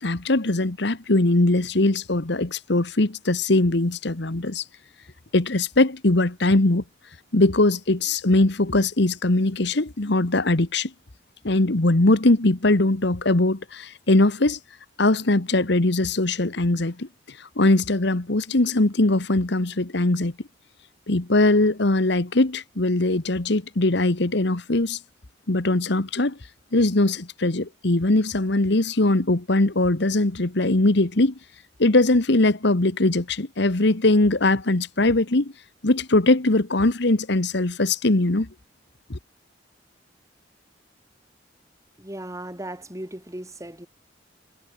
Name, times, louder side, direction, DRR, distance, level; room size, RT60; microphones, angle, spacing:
voice 1, 0.0-4.6 5.3-6.8 7.3-10.9 11.4-14.6 15.0-20.3 21.1-25.0 25.5-26.4 26.7-31.4 31.8-35.5 35.8-38.5 39.1-39.2, left 2 dB, 65° left, 1.5 m, -21 dB
voice 2, 42.0-43.9, right 1 dB, 15° right, 5.0 m, -36 dB
head